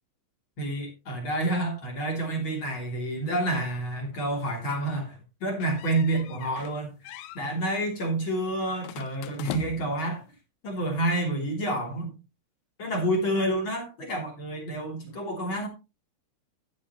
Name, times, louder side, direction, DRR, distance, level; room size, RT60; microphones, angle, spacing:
voice 1, 0.6-10.2 10.6-12.1 12.8-15.7, right 1 dB, 30° left, 3.0 m, -29 dB
sound 1, 5.6-6.8 7.0-7.4 8.8-10.0, left 13 dB, 90° left, 2.3 m, -40 dB
12.0 x 9.7 x 3.0 m
omnidirectional pair, 5.6 m